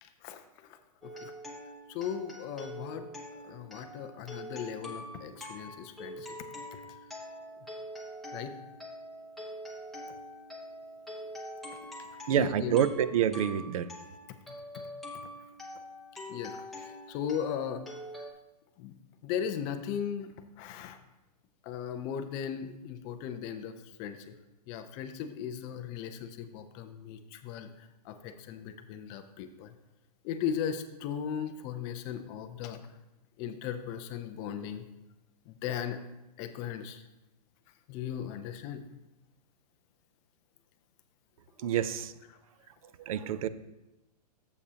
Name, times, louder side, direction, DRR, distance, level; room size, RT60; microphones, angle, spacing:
voice 1, 0.0-1.3 1.9-3.1 3.3-6.3 6.7-6.8 8.3-8.6 12.0-12.7 16.3-17.8 18.1-18.3 18.8-18.9 19.2-21.0 21.6-24.3 24.7-29.7 30.2-32.8 33.4-34.8 35.5-36.0 36.4-37.0 37.9-38.8, left 8 dB, 20° left, 8 dB, 0.3 m, -37 dB
sound 1, 1.0-18.3, equal, ahead, 0.9 m, -44 dB
voice 2, 12.3-13.9 41.6-42.1 43.1-43.5, right 9 dB, 55° right, 14 dB, 0.5 m, -27 dB
11.5 x 7.4 x 2.8 m, 0.96 s
hypercardioid pair, 155°, 21 cm